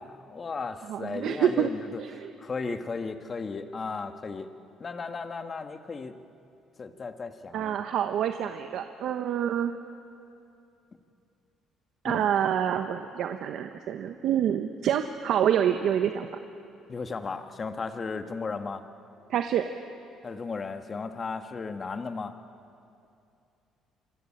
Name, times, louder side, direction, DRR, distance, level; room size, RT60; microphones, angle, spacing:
voice 1, 0.0-4.5 4.8-6.1 6.8-7.8 12.0-12.3 16.9-18.8 20.2-22.3, left 4 dB, 35° left, 7 dB, 1.7 m, -35 dB
voice 2, 0.9-1.7 2.0-2.3 7.5-9.7 12.0-16.3 19.3-19.6, right 9 dB, 70° right, 7 dB, 1.2 m, -27 dB
28.0 x 24.0 x 8.8 m, 2.6 s
cardioid pair, 105°, 0 cm